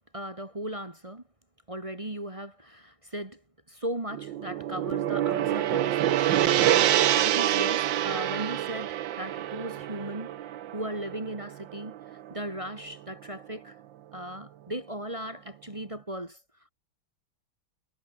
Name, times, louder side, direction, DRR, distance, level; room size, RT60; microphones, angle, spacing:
voice 1, 0.1-1.2 1.7-3.4 3.7-10.4 10.7-11.9 12.3-13.8 14.1-16.4, right 1 dB, 15° right, 1.6 m, -37 dB
Gong, 4.1-12.5, right 12 dB, 65° right, 1.5 m, -26 dB
omnidirectional pair, 2.3 m